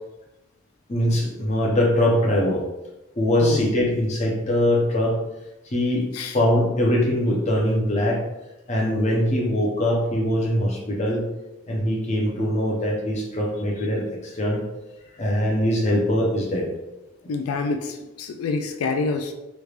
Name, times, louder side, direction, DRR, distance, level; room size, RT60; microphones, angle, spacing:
voice 1, 0.9-2.6 3.2-5.2 5.7-6.1 6.3-8.2 8.7-11.2 11.7-14.6 15.2-16.7, left 1 dB, 35° left, -2 dB, 0.6 m, -22 dB
voice 2, 17.3-19.3, left 4 dB, 90° left, 5 dB, 0.3 m, -27 dB
3.3 x 3.1 x 2.4 m, 0.99 s
head